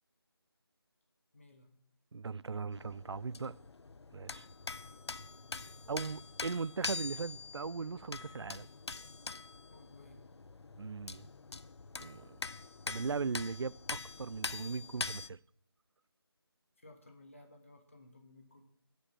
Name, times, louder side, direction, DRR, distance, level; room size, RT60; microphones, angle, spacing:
voice 1, 1.3-1.7 9.7-10.2 16.8-18.6, left 2 dB, 30° left, 1.4 m, -57 dB
voice 2, 2.1-3.6 4.1-4.5 5.9-8.7 10.8-11.3 12.0-12.4 12.9-15.4, right 5 dB, 85° right, 0.4 m, -39 dB
sound 1, 2.7-15.3, left 4 dB, 85° left, 0.6 m, -44 dB
11.0 x 5.2 x 7.3 m
figure-of-eight pair, 180°, 14 cm